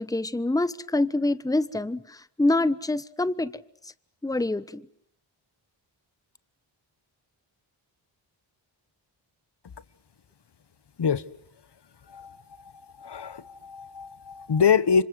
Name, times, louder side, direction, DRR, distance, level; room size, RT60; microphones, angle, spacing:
voice 1, 0.0-3.9 4.2-4.8, left 2 dB, 5° left, 1.1 m, -26 dB
voice 2, 12.1-12.7 13.0-15.0, left 6 dB, 55° left, 1.3 m, -25 dB
28.0 x 25.5 x 7.9 m
cardioid pair, 60°, 49 cm